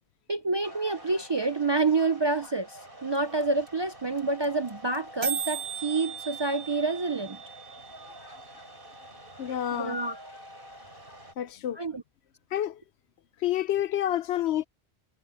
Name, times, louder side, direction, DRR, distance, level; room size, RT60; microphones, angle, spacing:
voice 1, 0.3-7.4 9.7-10.2 11.8-12.0, right 3 dB, 35° right, 0.4 m, -28 dB
sound 1, 0.6-11.3, equal, 55° right, 6.1 m, -48 dB
sound 2, 3.1-3.2 3.4-3.5 3.7-4.2 4.4-4.7 4.9-5.0 5.2-9.2, right 6 dB, 75° right, 1.8 m, -37 dB
voice 2, 9.4-10.0 11.4-11.8 12.5-12.8 13.4-14.6, left 11 dB, 80° left, 0.9 m, -28 dB
omnidirectional pair, 1.1 m